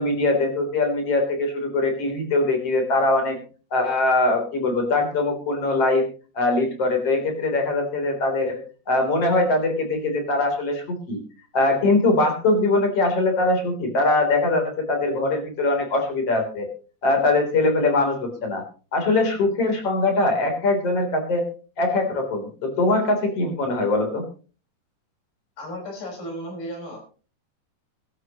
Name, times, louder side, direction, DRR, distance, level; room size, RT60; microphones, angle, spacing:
voice 1, 0.0-3.4 3.7-6.0 6.3-8.6 8.9-11.2 11.5-16.7 17.0-18.6 18.9-21.4 21.8-24.2, left 2 dB, 35° left, 4 dB, 4.3 m, -22 dB
voice 2, 25.6-27.0, equal, 65° left, 1 dB, 7.4 m, -34 dB
23.5 x 12.5 x 3.1 m, 0.37 s
omnidirectional pair, 5.0 m